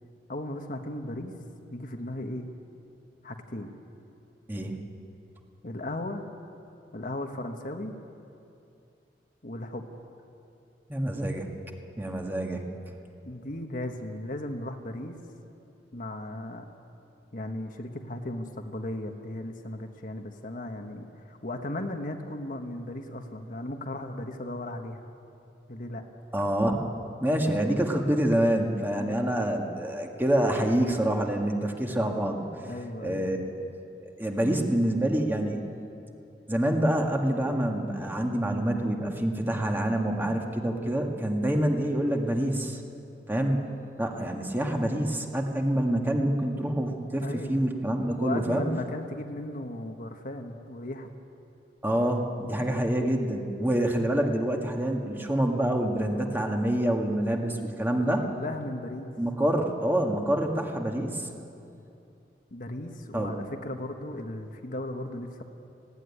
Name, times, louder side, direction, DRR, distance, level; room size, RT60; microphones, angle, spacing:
voice 1, 0.3-1.3 1.7-2.5 3.2-3.7 5.6-6.2 6.9-8.0 9.4-9.9 13.2-15.2 15.9-16.7 17.3-25.0 25.7-26.0 28.9-29.4 32.6-33.4 47.2-51.1 58.2-59.1 62.5-65.4, left 1 dB, 50° left, 4 dB, 1.4 m, -36 dB
voice 2, 10.9-11.5 12.0-12.7 26.3-26.9 27.2-32.5 33.0-33.6 34.0-35.6 36.5-42.8 43.3-43.6 44.0-48.7 51.8-58.2 59.2-61.3 63.1-63.3, right 1 dB, 10° right, 2 dB, 1.8 m, -27 dB
19.5 x 16.5 x 9.9 m, 2.7 s
head